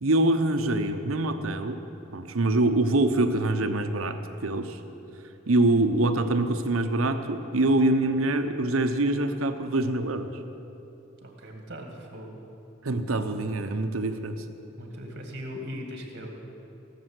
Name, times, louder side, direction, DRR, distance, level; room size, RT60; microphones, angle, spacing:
voice 1, 0.0-1.8 2.1-4.8 5.5-10.3 12.8-14.4, right 2 dB, 85° right, 8 dB, 0.8 m, -24 dB
voice 2, 11.2-12.4 14.8-16.4, equal, 55° right, 2 dB, 2.1 m, -39 dB
17.0 x 7.0 x 8.0 m, 2.9 s
head